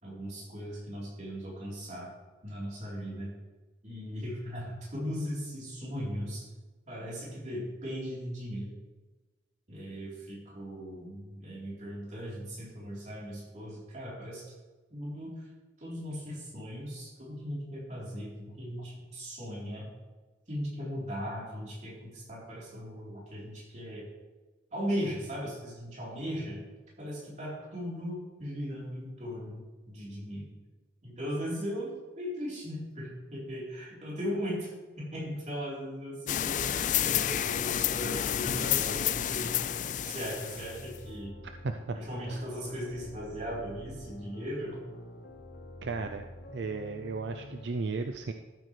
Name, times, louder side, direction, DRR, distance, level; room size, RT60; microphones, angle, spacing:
voice 1, 0.0-2.1 2.4-3.3 3.8-6.5 6.9-8.7 9.7-14.5 14.9-15.4 15.8-19.9 20.5-24.0 24.7-26.6 27.0-30.5 31.0-39.5 40.0-41.3 41.9-44.8, equal, 40° right, -5 dB, 3.8 m, -38 dB
sound 1, 36.3-41.0, left 11 dB, 45° left, 0.3 m, -30 dB
sound 2, 38.0-47.6, equal, 60° left, 1.0 m, -47 dB
voice 2, 41.6-42.0 42.3-42.4 45.8-46.2 46.5-48.3, right 4 dB, 75° right, 6 dB, 0.5 m, -34 dB
13.0 x 8.3 x 3.3 m, 1.3 s
head